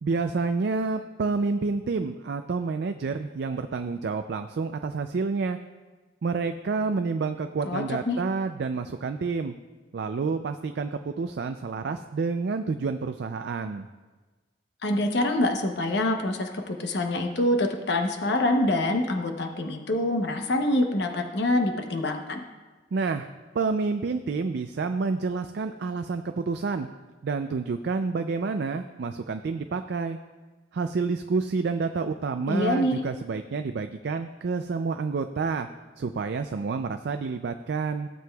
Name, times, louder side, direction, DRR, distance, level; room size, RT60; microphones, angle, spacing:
voice 1, 0.0-5.6 6.2-9.5 9.9-13.9 22.9-23.3 23.5-26.9 27.2-30.2 30.7-35.7 36.0-38.1, right 4 dB, 60° right, 8 dB, 0.4 m, -29 dB
voice 2, 7.6-8.2 14.8-22.4 32.5-33.0, left 1 dB, 65° left, 4 dB, 0.8 m, -25 dB
15.5 x 7.7 x 2.3 m, 1.3 s
head